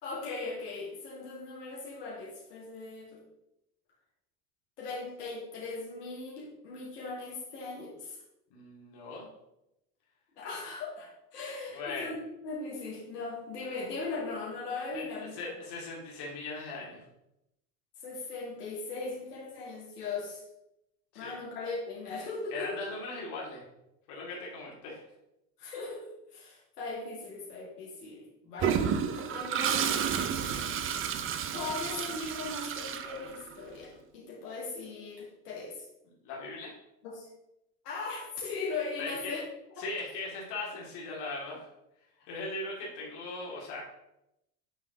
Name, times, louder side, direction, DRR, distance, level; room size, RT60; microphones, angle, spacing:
voice 1, 0.0-3.2 4.8-8.2 10.4-15.5 18.0-20.4 21.1-22.9 25.6-28.9 29.1-30.0 31.5-35.8 37.0-37.3 37.8-39.4 42.2-42.3, left 3 dB, 80° left, -5 dB, 2.2 m, -39 dB
voice 2, 8.5-9.3 11.7-12.1 14.9-17.0 21.2-21.3 22.5-23.6 24.1-25.0 30.4-30.8 36.2-36.7 39.0-39.4 39.8-41.6 42.3-43.8, left 3 dB, 60° left, -3 dB, 2.3 m, -39 dB
Toilet flush, 28.6-33.7, right 8 dB, 30° right, 0.5 m, -31 dB
8.4 x 3.7 x 3.8 m, 0.86 s
hypercardioid pair, 90°, 46 cm